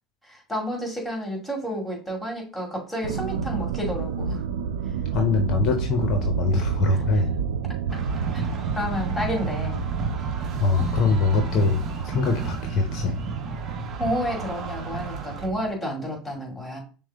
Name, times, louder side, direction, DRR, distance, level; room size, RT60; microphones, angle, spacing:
voice 1, 0.2-4.4 6.9-7.0 8.3-8.5 8.8-9.8 14.0-16.8, equal, 10° left, 0 dB, 2.2 m, -30 dB
sound 1, 3.0-15.7, right 7 dB, 75° right, 0.3 m, -30 dB
voice 2, 5.1-7.3 10.6-13.2, left 4 dB, 50° left, 4 dB, 0.7 m, -23 dB
sound 2, 7.9-15.5, right 3 dB, 40° right, 0.9 m, -33 dB
6.1 x 2.1 x 3.4 m, 0.37 s
hypercardioid pair, 80°, 0 cm